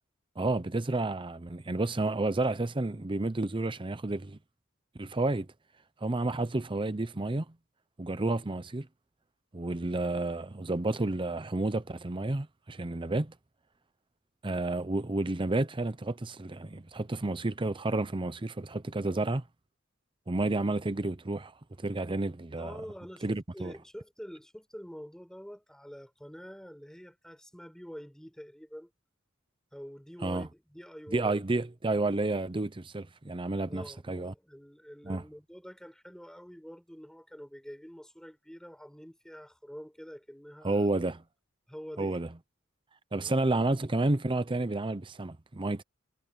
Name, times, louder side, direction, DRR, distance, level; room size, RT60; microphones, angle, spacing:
voice 1, 0.4-4.4 5.0-5.5 6.0-7.4 8.0-8.9 9.5-13.3 14.4-19.4 20.3-21.5 21.8-22.8 23.2-23.7 30.2-30.5 31.1-34.3 35.1-35.2 40.6-41.2 42.0-42.3 43.1-45.8, right 2 dB, 25° right, 0.7 m, -30 dB
voice 2, 22.6-28.9 29.7-31.4 33.7-40.9 41.7-42.2 43.2-43.4, equal, 5° left, 5.1 m, -46 dB
head